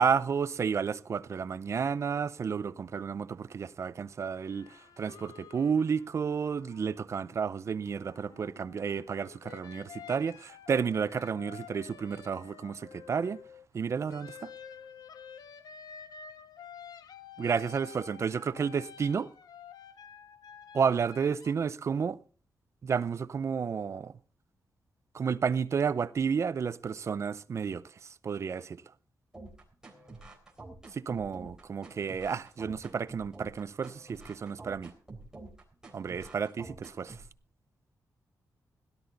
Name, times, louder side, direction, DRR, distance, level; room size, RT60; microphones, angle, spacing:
voice 1, 0.0-13.4 13.7-14.5 17.4-19.3 20.7-22.2 22.8-24.1 25.1-28.8 30.9-34.9 35.9-37.2, right 6 dB, 45° right, 0.6 m, -31 dB
sound 1, 4.5-7.5 7.8-13.7 14.1-21.5, left 7 dB, 75° left, 1.0 m, -50 dB
sound 2, 29.3-37.3, right 2 dB, 10° right, 3.5 m, -48 dB
17.5 x 12.5 x 4.0 m
wide cardioid pair, 160°, 7 cm